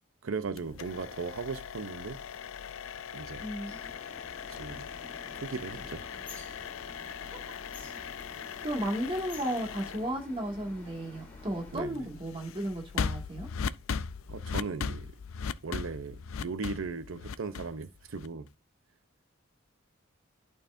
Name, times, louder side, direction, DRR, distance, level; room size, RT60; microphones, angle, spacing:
voice 1, 0.2-2.2 3.1-3.5 4.5-4.9 5.4-6.2 11.7-12.1 14.3-15.1 15.6-18.5, right 4 dB, 85° right, 0.6 m, -37 dB
sound 1, 0.6-18.5, left 6 dB, 85° left, 0.4 m, -39 dB
voice 2, 3.4-3.8 7.0-7.4 8.6-13.5, right 1 dB, 25° right, 1.9 m, -34 dB
sound 2, 3.7-11.8, left 1 dB, 10° left, 3.4 m, -50 dB
11.5 x 4.6 x 2.5 m
head